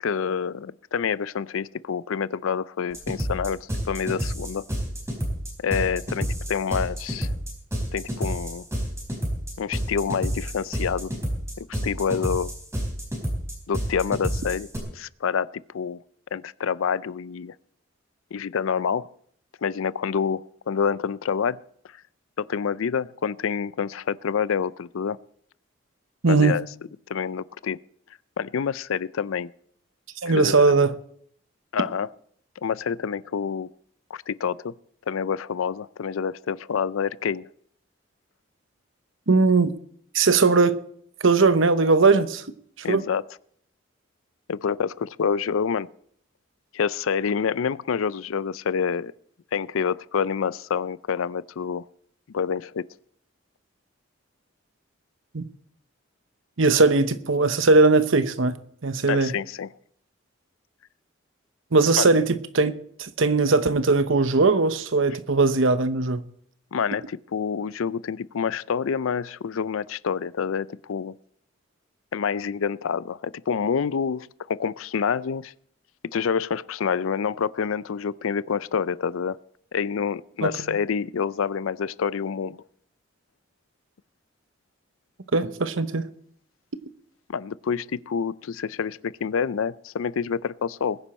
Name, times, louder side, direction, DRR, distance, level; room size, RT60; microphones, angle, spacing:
voice 1, 0.0-4.6 5.6-7.3 7.9-8.6 9.6-11.1 11.6-12.5 13.7-16.0 16.3-17.5 18.3-19.1 19.6-21.6 22.4-25.2 26.3-26.6 27.1-27.8 28.4-29.5 30.3-30.7 31.7-32.1 32.6-33.7 34.1-34.7 35.1-37.5 42.8-43.2 44.5-45.9 46.7-49.1 49.5-51.8 52.3-52.8 59.1-59.7 62.0-62.1 66.7-71.2 72.1-75.5 76.1-79.4 79.7-82.6 87.3-91.0, left 6 dB, 90° left, 0.4 m, -27 dB
sound 1, 2.9-14.8, equal, 15° right, 4.3 m, -29 dB
voice 2, 26.2-26.6 30.2-30.9 39.3-39.7 40.1-40.8 41.2-42.4 42.9-43.0 55.3-55.5 56.6-58.6 58.8-59.3 61.7-62.7 63.0-66.2 80.4-80.8 85.3-86.1, right 3 dB, 75° right, 0.9 m, -19 dB
21.5 x 9.9 x 4.3 m
head